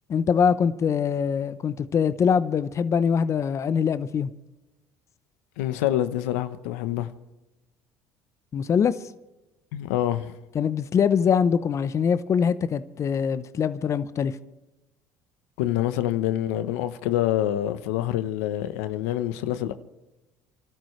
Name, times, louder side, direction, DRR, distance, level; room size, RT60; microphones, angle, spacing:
voice 1, 0.1-4.3 8.5-8.9 10.5-14.3, left 7 dB, 40° left, 0.8 m, -23 dB
voice 2, 5.6-7.1 9.7-10.4 15.6-19.7, left 13 dB, 90° left, 0.9 m, -26 dB
29.0 x 12.5 x 3.2 m
supercardioid pair, 90°, 8 cm